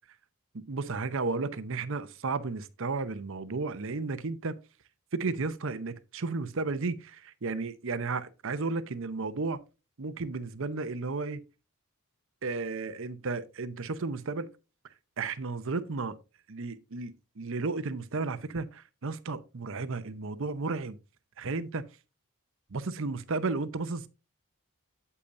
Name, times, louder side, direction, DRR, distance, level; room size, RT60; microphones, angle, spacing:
voice 1, 0.5-4.6 5.1-9.6 10.0-11.4 12.4-14.5 15.2-16.2 16.5-21.0 21.4-21.9 22.7-24.1, right 3 dB, 60° right, 0.7 m, -33 dB
8.5 x 8.4 x 2.6 m
head